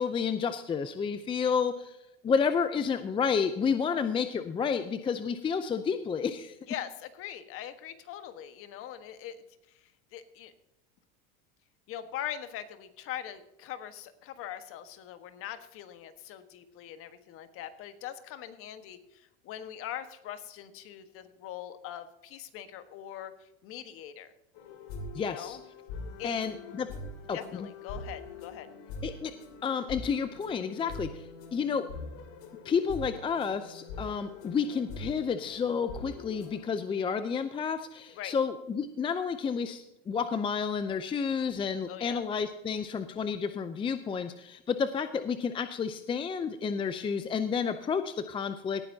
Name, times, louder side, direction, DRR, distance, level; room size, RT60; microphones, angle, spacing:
voice 1, 0.0-2.0 2.2-6.6 25.1-25.6 26.2-26.9 27.3-27.7 29.0-29.3 29.6-31.8 32.6-48.8, left 6 dB, 15° left, 10 dB, 0.5 m, -30 dB
voice 2, 6.7-9.4 10.1-10.5 11.9-24.3 25.2-25.6 26.2-26.4 27.3-28.7 38.2-38.3 41.9-42.2, left 11 dB, 45° left, 10 dB, 1.4 m, -41 dB
sound 1, 24.5-36.6, left 2 dB, 65° left, 2.7 m, -43 dB
18.0 x 10.5 x 2.8 m, 0.87 s
supercardioid pair, 125°, 30 cm